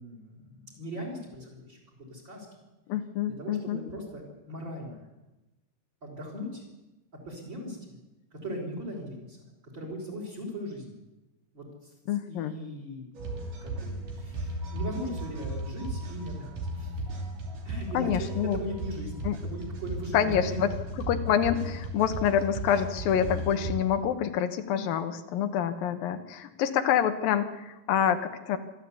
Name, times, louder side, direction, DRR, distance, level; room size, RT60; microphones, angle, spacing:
voice 1, 0.0-1.8 2.1-2.5 3.4-4.2 4.5-5.1 6.0-6.6 7.3-8.0 8.3-9.4 9.7-10.9 11.5-11.9 12.3-13.0 13.6-17.0 17.6-18.3 18.5-20.6 20.9-21.0, equal, 30° right, 0 dB, 5.5 m, -39 dB
voice 2, 2.9-3.8 12.1-12.5 17.9-18.6 19.2-19.4 20.1-20.7 21.0-28.6, left 9 dB, 85° left, 8 dB, 2.9 m, -27 dB
sound 1, 13.1-23.7, right 1 dB, 70° right, 4.5 m, -35 dB
26.0 x 12.5 x 8.4 m, 1.0 s
omnidirectional pair, 4.0 m